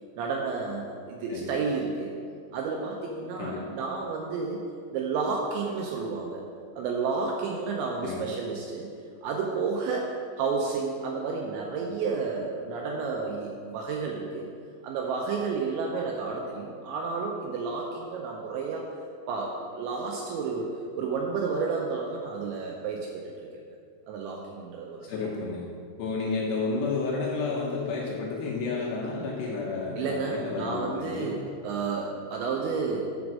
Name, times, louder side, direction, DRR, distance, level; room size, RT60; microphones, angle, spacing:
voice 1, 0.2-2.1 2.5-4.6 4.9-6.4 6.8-8.9 9.2-14.5 14.8-18.9 19.3-20.7 21.0-23.3 24.1-25.0 30.0-33.1, right 4 dB, 80° right, 0 dB, 2.7 m, -31 dB
voice 2, 25.0-25.6 26.0-31.4, left 4 dB, 75° left, -3 dB, 2.6 m, -31 dB
9.5 x 5.2 x 6.1 m, 2.3 s
omnidirectional pair, 5.8 m